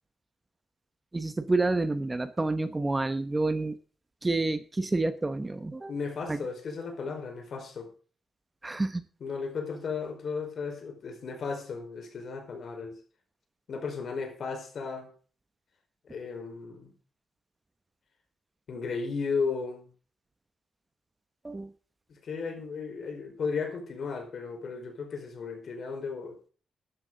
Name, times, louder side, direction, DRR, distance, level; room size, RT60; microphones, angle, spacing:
voice 1, 1.1-3.8 4.2-5.9 6.3-6.4 8.6-9.0 21.4-21.7, right 2 dB, 15° right, 0.9 m, -28 dB
voice 2, 5.9-7.9 9.2-13.0 13.7-15.1 16.1-16.9 18.7-19.9 22.1-26.4, left 5 dB, 55° left, 4.7 m, -35 dB
13.0 x 11.5 x 3.9 m
cardioid pair, 115°, 0 cm